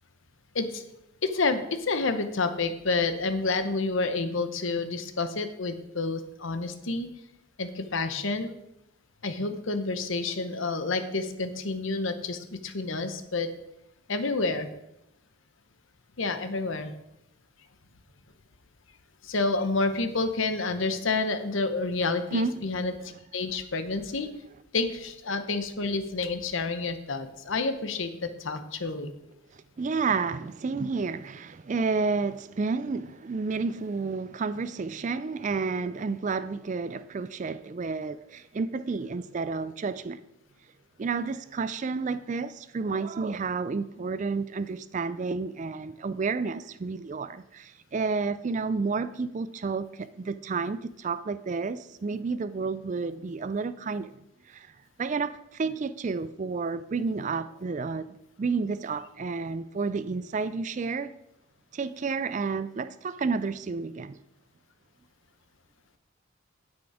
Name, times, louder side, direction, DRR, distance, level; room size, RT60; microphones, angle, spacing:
voice 1, 1.2-7.1 7.6-8.5 9.2-13.5 14.1-14.7 16.2-16.9 19.2-24.3 24.7-29.1 59.2-59.3, left 3 dB, 65° left, 0.9 m, -29 dB
voice 2, 22.3-22.7 29.5-40.2 41.0-54.1 54.5-54.7 55.0-61.1 61.7-64.2, right 4 dB, 35° right, 0.3 m, -31 dB
9.6 x 8.5 x 4.9 m
head